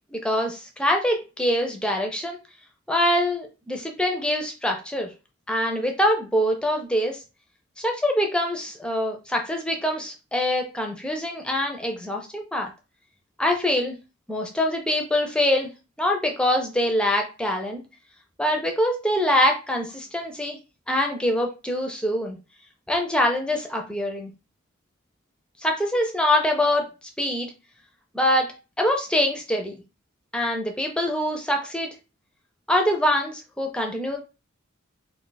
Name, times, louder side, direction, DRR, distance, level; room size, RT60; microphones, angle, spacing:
voice 1, 0.1-2.4 2.9-5.1 5.5-7.2 7.8-12.7 13.4-14.0 14.3-15.7 16.0-17.8 18.4-20.6 20.9-22.4 22.9-24.3 25.6-26.9 27.2-27.5 28.1-28.5 28.8-29.8 30.3-31.9 32.7-34.2, left 1 dB, 5° left, 2 dB, 0.5 m, -24 dB
2.5 x 2.4 x 3.9 m, 0.30 s
head